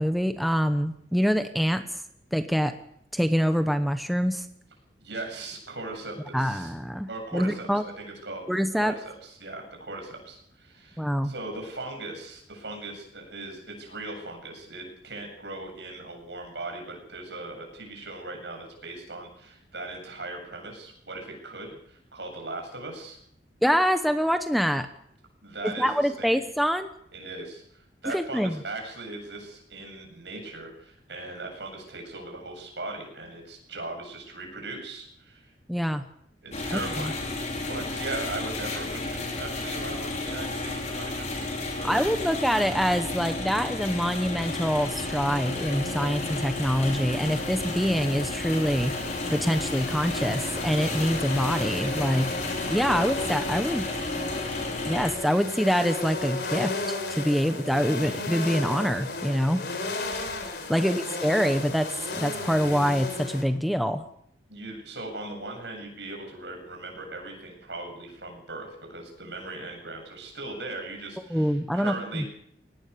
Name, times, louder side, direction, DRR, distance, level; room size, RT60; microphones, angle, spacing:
voice 1, 0.0-2.0 2.3-2.7 3.1-4.5 6.3-7.8 8.5-8.9 11.0-11.3 23.6-24.9 25.6-26.9 28.1-28.6 35.7-36.1 36.7-37.1 41.8-49.0 49.3-52.3 52.7-53.9 54.8-59.6 60.7-61.9 62.2-64.0 71.3-72.3, equal, ahead, 8 dB, 1.0 m, -25 dB
voice 2, 5.0-6.7 7.1-8.4 8.8-23.2 25.4-26.4 27.1-35.5 36.4-37.2 37.7-41.4 41.7-42.1 64.5-72.3, right 2 dB, 75° right, 2 dB, 7.9 m, -39 dB
sound 1, 36.5-55.1, left 2 dB, 40° left, 5.3 m, -33 dB
sound 2, 44.4-63.4, left 2 dB, 65° left, 4.3 m, -34 dB
22.5 x 19.0 x 7.0 m, 0.69 s
head